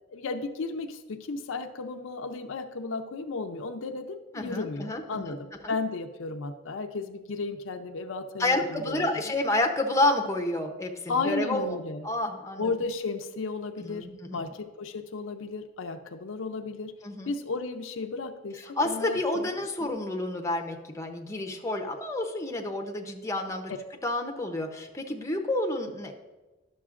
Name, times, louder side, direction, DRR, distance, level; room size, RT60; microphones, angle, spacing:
voice 1, 0.1-9.2 11.1-12.1 12.6-16.9 17.3-19.5 19.8-20.0 23.7-23.8, left 3 dB, 75° left, 6 dB, 0.5 m, -34 dB
voice 2, 4.3-5.2 5.6-5.7 8.4-11.8 12.0-12.7 13.8-14.4 17.0-17.3 18.8-23.7 24.0-26.1, left 2 dB, 15° left, 3 dB, 0.7 m, -29 dB
11.0 x 6.5 x 2.5 m, 1.1 s
head